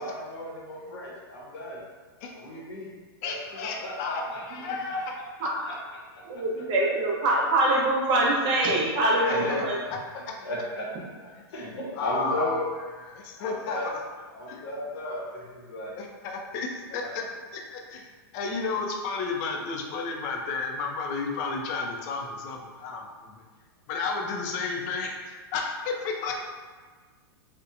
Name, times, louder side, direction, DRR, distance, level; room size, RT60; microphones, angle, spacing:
voice 1, 0.0-1.8 2.3-2.9 3.2-4.4 4.9-5.0 5.6-5.7 6.1-6.2 9.2-9.6 10.4-12.6 13.4-13.9 14.3-16.0 16.9-17.2 26.2-26.3, left 1 dB, 75° left, -3 dB, 0.8 m, -34 dB
voice 2, 3.2-5.1 9.3-9.6 9.9-10.3 11.4-11.5 12.0-12.6 13.1-14.0 14.5-14.6 16.0-17.2 17.5-18.1 18.3-23.3 23.9-26.3, left 4 dB, 40° left, 2 dB, 0.4 m, -32 dB
voice 3, 6.3-9.8, right 1 dB, 35° right, -4 dB, 0.7 m, -24 dB
2.8 x 2.1 x 2.5 m, 1.4 s
hypercardioid pair, 130°, 13 cm